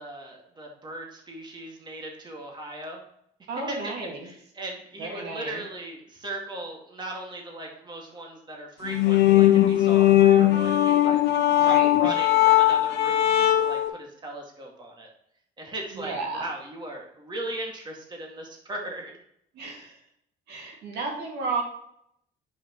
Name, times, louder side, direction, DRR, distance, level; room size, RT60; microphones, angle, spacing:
voice 1, 0.0-3.0 3.7-3.8 4.2-11.2 11.6-15.1 15.6-19.1 19.8-19.9, right 1 dB, 25° right, 0 dB, 2.2 m, -38 dB
voice 2, 3.5-4.3 5.0-5.6 11.5-11.9 15.9-16.5 19.5-20.0 20.5-21.6, right 3 dB, 75° right, 0 dB, 2.3 m, -33 dB
sound 1, 8.8-13.9, left 13 dB, 80° left, 1.0 m, -19 dB
9.7 x 5.9 x 3.1 m, 0.73 s
cardioid pair, 110°, 17 cm